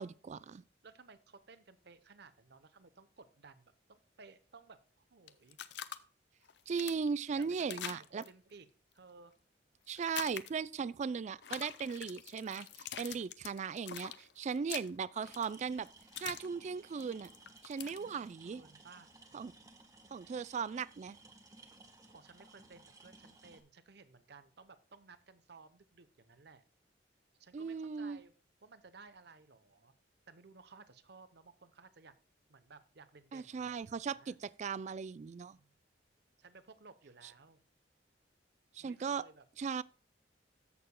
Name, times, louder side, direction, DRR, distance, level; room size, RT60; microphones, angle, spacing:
voice 1, 0.0-0.6 6.7-8.2 9.9-15.9 16.2-17.3 17.6-18.6 19.3-19.5 20.1-21.2 27.5-28.2 33.3-35.6 38.7-39.3 39.6-39.8, right 5 dB, 40° right, 0.3 m, -38 dB
voice 2, 0.8-5.6 7.3-8.7 8.9-9.3 17.9-19.1 22.1-26.6 27.4-28.3 28.6-29.9 30.3-32.1 32.5-34.4 35.5-35.8 36.4-37.6 38.8-39.4, right 4 dB, 65° right, 0.8 m, -58 dB
sound 1, 5.3-6.0 6.4-8.3 9.9-10.7 11.4-16.5 16.8-18.0, left 10 dB, 65° left, 0.6 m, -45 dB
sound 2, 15.2-23.6, right 2 dB, 20° right, 1.1 m, -59 dB
14.0 x 6.7 x 2.2 m
head